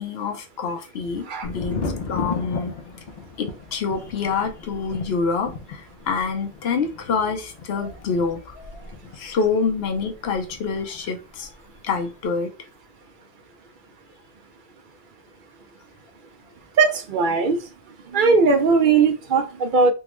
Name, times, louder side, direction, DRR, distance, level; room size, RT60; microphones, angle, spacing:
voice 1, 0.0-2.7 3.4-8.8 9.2-11.5 11.8-12.5, left 5 dB, 75° left, 0.9 m, -26 dB
Thunder, 1.4-11.1 11.3-12.1, left 4 dB, 55° left, 0.6 m, -35 dB
voice 2, 16.8-17.6 18.1-19.9, right 4 dB, 60° right, 0.6 m, -18 dB
3.6 x 2.2 x 3.0 m
omnidirectional pair, 1.1 m